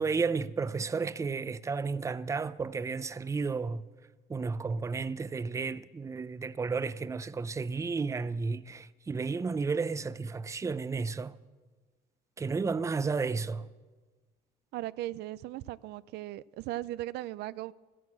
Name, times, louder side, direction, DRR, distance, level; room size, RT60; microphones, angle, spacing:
voice 1, 0.0-3.9 4.3-11.4 12.4-13.7, right 4 dB, 20° right, 0.5 m, -32 dB
voice 2, 14.7-17.7, right 15 dB, 80° right, 0.4 m, -38 dB
14.5 x 11.0 x 7.6 m
cardioid pair, 110°, 17 cm